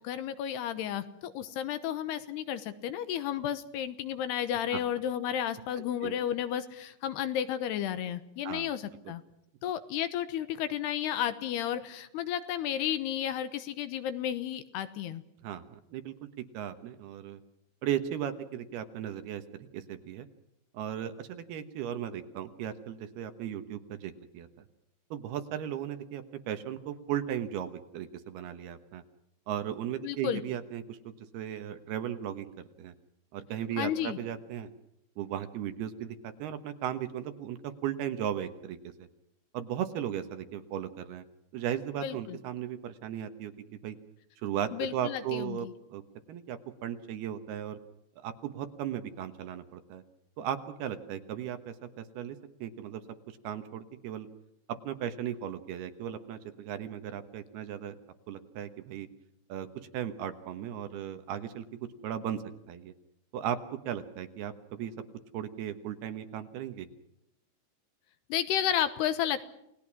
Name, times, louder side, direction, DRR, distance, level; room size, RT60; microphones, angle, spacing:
voice 1, 0.0-9.2 9.6-15.2 30.0-30.4 33.8-34.2 42.0-42.4 44.7-45.7 68.3-69.5, left 10 dB, 75° left, 11 dB, 3.0 m, -32 dB
voice 2, 15.4-16.1 16.5-17.4 17.8-20.3 20.7-24.5 25.1-29.0 29.5-32.5 32.8-32.9 33.3-34.7 35.2-39.1 39.5-41.2 41.5-43.5 43.8-44.0 44.4-45.7 45.9-46.0 46.3-47.8 48.2-50.0 50.4-53.0 53.3-54.3 54.8-58.0 58.3-59.1 59.5-59.7 59.9-61.7 62.0-62.9 63.3-63.6 63.8-64.9 65.3-66.9, right 10 dB, 70° right, 9 dB, 3.0 m, -36 dB
29.5 x 19.5 x 6.1 m, 0.82 s
omnidirectional pair, 5.2 m